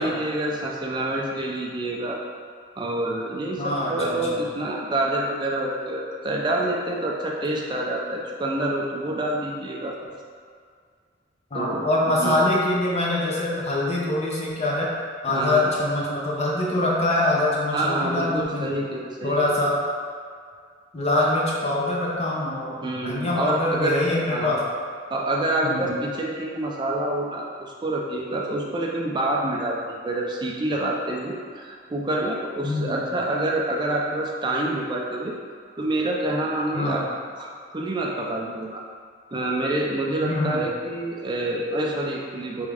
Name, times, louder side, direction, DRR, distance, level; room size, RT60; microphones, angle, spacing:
voice 1, 0.0-2.2 2.8-10.0 11.5-12.4 15.3-15.7 17.7-19.5 22.8-24.0 24.3-24.5 25.1-35.4 35.8-37.0 37.4-38.8 39.3-42.7, right 1 dB, 25° right, -1 dB, 0.4 m, -27 dB
voice 2, 3.6-4.2 11.5-14.9 15.2-18.7 19.2-19.8 20.9-24.7 25.6-25.9 32.6-33.0 36.7-37.0 40.2-40.7, left 1 dB, 35° left, -4 dB, 0.7 m, -24 dB
3.6 x 3.1 x 3.4 m, 2.1 s
head